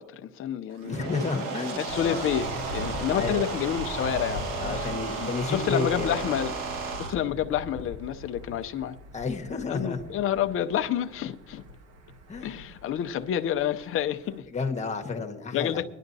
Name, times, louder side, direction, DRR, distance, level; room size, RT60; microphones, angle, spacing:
voice 1, 0.0-1.0 1.8-6.6 7.0-9.0 9.7-11.6 12.4-14.4 15.5-15.8, left 10 dB, 40° left, 0.6 m, -29 dB
sound 1, 0.7-7.1, right 4 dB, 90° right, 1.6 m, -34 dB
voice 2, 0.9-2.3 3.1-3.5 4.6-6.2 9.1-10.1 12.3-12.6 14.5-15.9, left 4 dB, 20° left, 1.3 m, -31 dB
Thunder, 1.9-14.4, left 1 dB, 50° right, 1.5 m, -41 dB
21.5 x 11.0 x 2.7 m
cardioid pair, 130°, 32 cm